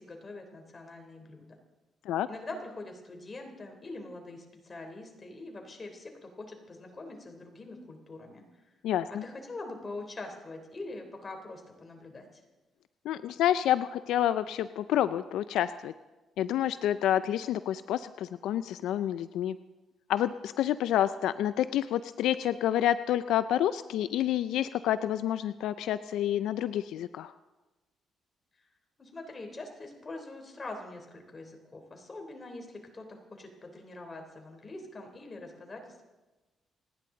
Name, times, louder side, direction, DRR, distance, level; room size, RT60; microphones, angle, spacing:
voice 1, 0.0-1.5 2.3-8.4 9.1-12.4 29.0-36.1, left 2 dB, 30° left, 3 dB, 3.3 m, -44 dB
voice 2, 8.8-9.2 13.1-15.9 16.4-19.6 20.1-27.3, left 11 dB, 85° left, 13 dB, 0.4 m, -28 dB
29.0 x 10.0 x 3.9 m, 1.1 s
cardioid pair, 90°, 0 cm